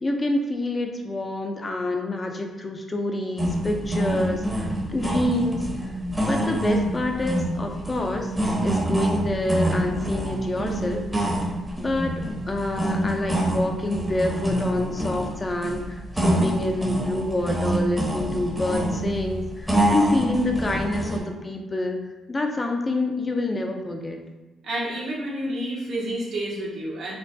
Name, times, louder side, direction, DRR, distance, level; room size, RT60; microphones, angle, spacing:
voice 1, 0.0-5.9 6.3-11.0 11.8-22.0 22.3-24.2, left 1 dB, 25° left, 3 dB, 0.4 m, -27 dB
sound 1, 3.4-21.2, right 1 dB, 10° right, 0.7 m, -26 dB
voice 2, 24.6-27.2, right 1 dB, 70° right, -6 dB, 1.2 m, -29 dB
4.4 x 2.3 x 2.6 m, 1.2 s
cardioid pair, 90°, 0 cm